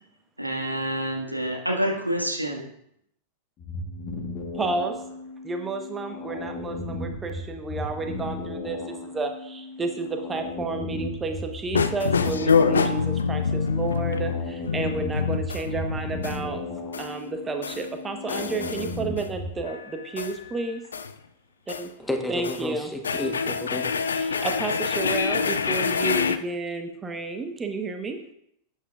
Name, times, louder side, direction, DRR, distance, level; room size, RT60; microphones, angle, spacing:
voice 1, 0.4-2.6, equal, 90° right, 0 dB, 1.7 m, -27 dB
sound 1, 3.6-19.6, left 2 dB, 30° left, 1.3 m, -36 dB
voice 2, 4.5-5.0 5.4-16.6 17.0-20.8 21.8-21.9 22.3-22.9 24.1-28.2, right 3 dB, 15° right, 6 dB, 1.0 m, -31 dB
sound 2, 11.7-16.4 16.9-17.2 17.6-17.9 18.3-19.3 19.7-21.1 21.7-21.9 22.3-22.6 23.0-26.4, left 5 dB, 70° left, 0.5 m, -26 dB
voice 3, 22.0-24.5, left 1 dB, 5° left, 4 dB, 1.1 m, -32 dB
11.5 x 8.4 x 2.4 m, 0.73 s
figure-of-eight pair, 90°, 0 cm